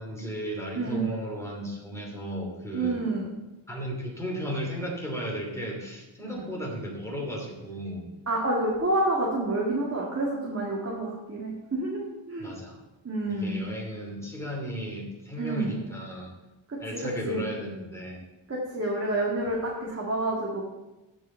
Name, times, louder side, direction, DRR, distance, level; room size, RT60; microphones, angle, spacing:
voice 1, 0.0-3.0 3.7-8.1 12.4-12.8 13.3-16.3 16.8-18.2, equal, 5° left, -2 dB, 2.9 m, -35 dB
voice 2, 0.7-1.1 2.7-3.3 6.2-6.3 8.3-12.5 13.0-13.6 15.4-15.7 16.7-17.5 18.5-20.6, right 2 dB, 30° right, -3 dB, 1.9 m, -29 dB
15.5 x 5.4 x 4.5 m, 1.0 s
wide cardioid pair, 125°, 49 cm